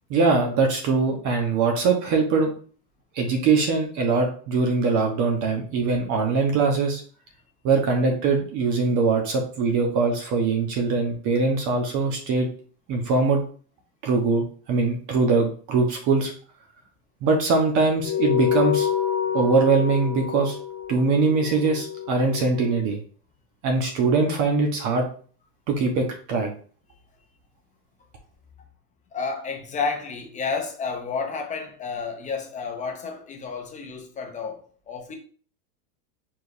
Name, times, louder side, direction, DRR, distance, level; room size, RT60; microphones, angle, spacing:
voice 1, 0.1-2.5 3.1-7.0 7.6-12.5 12.9-13.4 14.0-16.3 17.2-18.9 19.3-20.6 20.9-23.0 23.6-25.1 25.7-26.5, right 4 dB, 40° right, 1.0 m, -22 dB
sound 1, 18.0-22.8, left 9 dB, 40° left, 1.6 m, -27 dB
voice 2, 29.1-34.6 34.9-35.1, left 5 dB, 15° left, 0.5 m, -31 dB
4.8 x 3.8 x 2.6 m
supercardioid pair, 135°, 47 cm